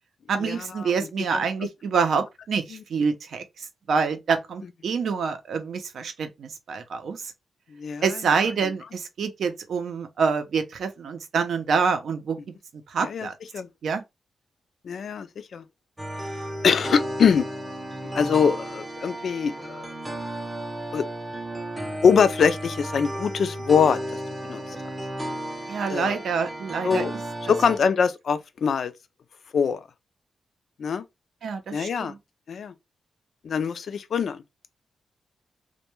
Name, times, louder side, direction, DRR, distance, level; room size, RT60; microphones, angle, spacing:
voice 1, 0.3-7.3 8.0-12.4 12.7-13.4 13.8-14.0 25.7-27.1 31.4-32.2, right 5 dB, 70° right, 0.5 m, -27 dB
voice 2, 7.7-8.1 13.0-13.3 13.5-13.7 14.8-15.6 16.6-17.5 18.1-19.9 20.9-21.1 22.0-24.0 24.5-24.6 25.9-26.2 26.8-27.1 27.5-28.9 29.5-29.8 30.8-31.0 31.7-32.1 32.5-32.7 33.4-34.4, left 6 dB, 65° left, 0.3 m, -23 dB
sound 1, 16.0-27.8, right 1 dB, 10° right, 0.5 m, -33 dB
2.2 x 2.1 x 2.9 m
wide cardioid pair, 130°, 0 cm